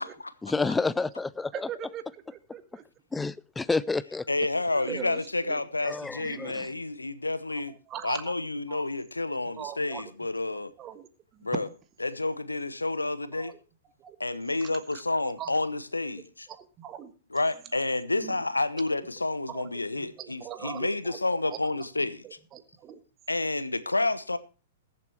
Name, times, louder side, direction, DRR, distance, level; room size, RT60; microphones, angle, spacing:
voice 1, 0.4-1.7 3.1-4.2 5.8-6.7, left 3 dB, 10° left, 0.5 m, -29 dB
voice 2, 1.5-2.0 2.3-2.8 4.7-5.2 5.5-5.6 7.5-7.6 7.9-8.3 8.7-8.8 9.4-10.1 10.5-11.1 11.3-11.5 13.3-13.6 14.0-14.2 15.2-15.5 16.5-17.1 18.1-18.3 19.4-19.7 20.2-21.6 22.2-23.0, right 10 dB, 25° right, 1.4 m, -41 dB
voice 3, 4.3-7.7 8.0-10.7 11.4-11.7 12.0-13.5 14.2-16.5 17.3-22.2 23.3-24.4, left 2 dB, 80° left, 0.9 m, -30 dB
20.5 x 7.5 x 3.1 m
figure-of-eight pair, 105°, 0 cm